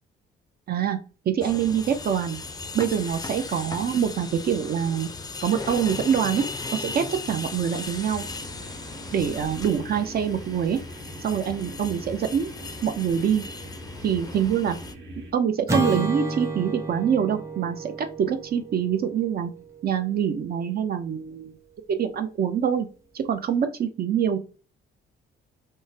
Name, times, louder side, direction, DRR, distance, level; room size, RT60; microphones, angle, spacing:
voice 1, 0.7-1.0 1.3-2.4 2.7-5.1 5.4-6.4 6.7-8.2 9.1-10.8 11.2-12.5 12.8-13.4 14.0-14.8 15.3-17.9 18.2-19.5 19.8-21.5 21.9-22.9 23.1-24.4, right 8 dB, 50° right, 8 dB, 0.5 m, -25 dB
sound 1, 1.4-14.9, left 3 dB, 20° left, 0.4 m, -37 dB
sound 2, 8.0-15.3, right 1 dB, 80° right, 1.3 m, -42 dB
Acoustic guitar / Strum, 15.7-20.1, right 2 dB, 15° right, 0.8 m, -31 dB
3.7 x 2.0 x 2.6 m, 0.36 s
cardioid pair, 90°, 20 cm